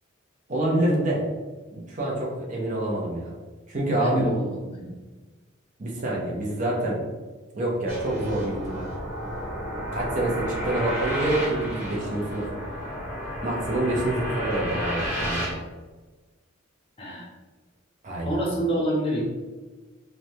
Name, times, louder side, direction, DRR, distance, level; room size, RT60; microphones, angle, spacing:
voice 1, 0.5-1.3 1.7-3.3 3.7-4.3 4.8-4.9 5.8-7.0 7.5-8.9 9.9-12.5 13.4-15.6 18.0-18.4, right 1 dB, 40° right, -3 dB, 0.6 m, -27 dB
voice 2, 3.9-4.9 17.0-17.3 18.2-19.3, right 1 dB, 30° left, -3 dB, 0.6 m, -27 dB
sound 1, 7.9-15.5, equal, 10° right, 1.0 m, -31 dB
3.1 x 2.2 x 2.6 m, 1.2 s
head